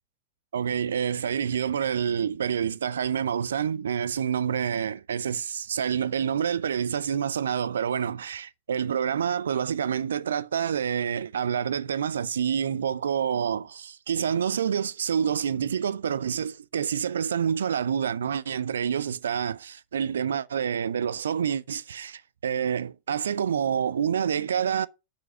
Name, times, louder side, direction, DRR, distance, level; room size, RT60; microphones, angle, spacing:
voice 1, 0.5-24.9, right 8 dB, 65° right, 0.5 m, -27 dB
7.1 x 6.2 x 6.4 m
figure-of-eight pair, 90°, 0 cm